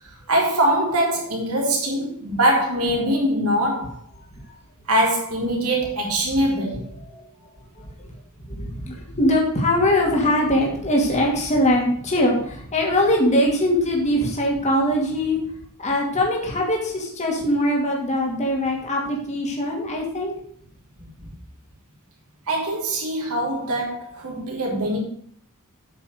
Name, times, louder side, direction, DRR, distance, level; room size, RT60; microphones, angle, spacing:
voice 1, 0.3-4.0 4.9-6.8 22.5-25.0, right 1 dB, 75° right, 3.7 m, -22 dB
voice 2, 8.5-15.4 15.8-20.3, left 1 dB, 30° left, 2.6 m, -22 dB
8.6 x 6.5 x 6.6 m
head